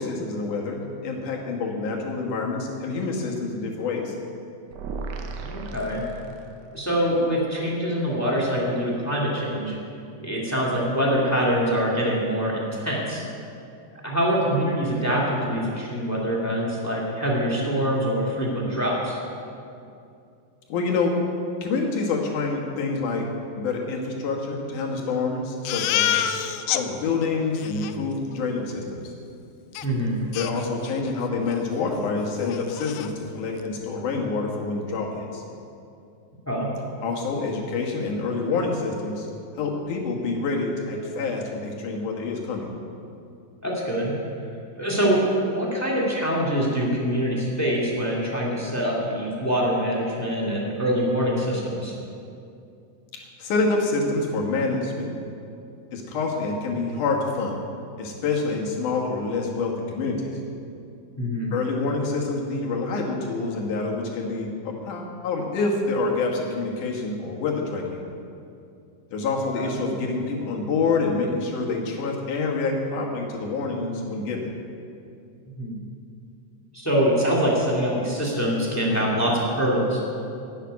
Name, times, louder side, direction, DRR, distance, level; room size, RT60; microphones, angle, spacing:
voice 1, 0.0-4.2 20.7-21.1 21.6-23.3 23.6-26.2 26.7-29.1 30.4-35.4 37.0-39.3 39.6-42.7 53.4-55.1 55.9-57.6 58.0-60.4 61.5-68.0 69.1-74.5, left 3 dB, 65° left, 0 dB, 2.8 m, -27 dB
sound 1, 4.7-6.8, right 3 dB, 80° right, 2.7 m, -35 dB
voice 2, 5.4-6.0 6.7-9.7 10.2-13.2 13.9-19.2 29.8-30.2 36.4-36.7 43.6-44.1 44.8-51.9 61.2-61.5 69.5-69.7 75.6-75.7 76.7-80.0, equal, 5° left, -4 dB, 1.2 m, -24 dB
Crying sobbing, 25.7-26.8 27.2-27.3 27.6-27.9 29.8-29.9 30.3-31.1 31.5-31.6 32.0-32.1 32.4-33.1, left 11 dB, 80° left, 2.2 m, -27 dB
12.0 x 7.5 x 9.5 m, 2.6 s
omnidirectional pair, 4.2 m